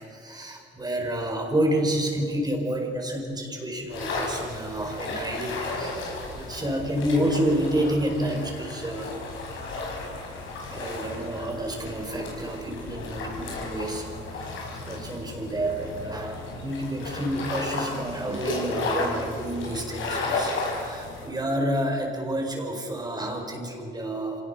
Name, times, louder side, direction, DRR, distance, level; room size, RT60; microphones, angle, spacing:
voice 1, 0.0-9.2 10.7-24.4, right 1 dB, 20° right, 2 dB, 4.7 m, -29 dB
sound 1, 3.9-21.3, left 3 dB, 80° left, 5.6 m, -33 dB
26.0 x 18.0 x 5.6 m, 2.6 s
cardioid pair, 90°, 20 cm